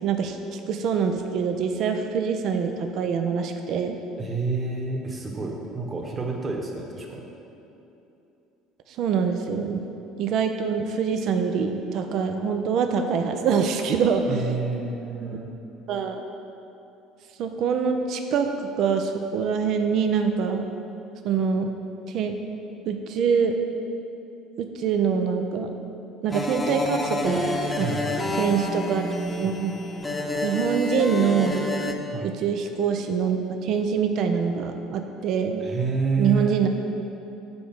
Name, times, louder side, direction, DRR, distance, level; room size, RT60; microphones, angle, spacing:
voice 1, 0.0-4.0 9.0-9.8 10.2-14.4 15.3-15.4 15.9-16.2 17.4-18.5 18.8-20.6 21.2-21.7 22.1-22.3 22.9-23.5 24.6-25.7 26.2-27.5 27.8-28.0 28.4-29.1 29.4-29.7 30.4-31.6 32.2-35.6 36.2-36.7, right 6 dB, 55° right, 6 dB, 0.5 m, -24 dB
voice 2, 4.2-7.2 14.3-15.5 27.8-28.4 32.1-32.3 35.6-36.6, right 4 dB, 30° right, 0 dB, 1.3 m, -29 dB
sound 1, 26.3-31.9, left 2 dB, 15° left, 0.9 m, -28 dB
7.0 x 5.1 x 6.0 m, 2.8 s
hypercardioid pair, 60°, 0 cm